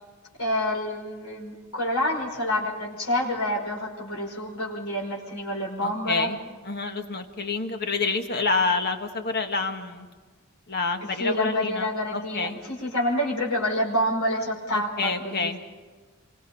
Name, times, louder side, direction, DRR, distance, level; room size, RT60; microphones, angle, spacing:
voice 1, 0.4-6.3 11.2-15.5, left 1 dB, 75° left, -2 dB, 5.3 m, -28 dB
voice 2, 5.8-6.4 6.6-10.1 10.7-12.6 14.7-15.6, left 4 dB, 45° left, 5 dB, 1.6 m, -28 dB
27.5 x 23.0 x 4.3 m, 1.4 s
head